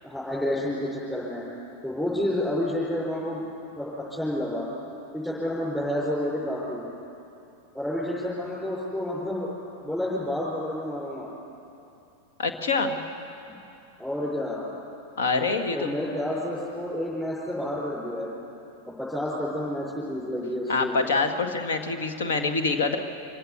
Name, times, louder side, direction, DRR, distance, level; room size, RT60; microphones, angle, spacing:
voice 1, 0.0-1.4 1.8-3.4 3.8-4.7 5.1-6.8 7.7-9.5 9.8-11.3 14.0-14.7 15.7-18.3 19.0-21.1, left 1 dB, 5° left, -8 dB, 5.7 m, -29 dB
voice 2, 12.4-13.0 15.2-15.9 20.7-23.0, left 4 dB, 60° left, 5 dB, 1.9 m, -25 dB
26.0 x 16.5 x 8.4 m, 2.7 s
figure-of-eight pair, 90°, 0 cm